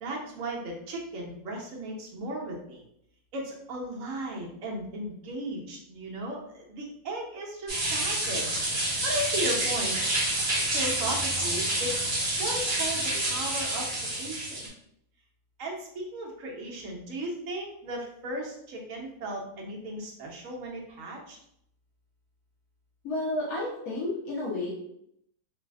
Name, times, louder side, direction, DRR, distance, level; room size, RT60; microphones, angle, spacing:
voice 1, 0.0-2.8 3.3-8.5 9.0-10.0 10.7-12.0 12.4-14.7 15.6-21.4, right 1 dB, 65° right, -1 dB, 1.0 m, -36 dB
sound 1, 7.7-14.7, right 1 dB, 40° right, 0.9 m, -28 dB
voice 2, 23.0-24.7, left 2 dB, 70° left, -7 dB, 1.2 m, -31 dB
3.2 x 2.4 x 2.3 m, 0.72 s
omnidirectional pair, 1.6 m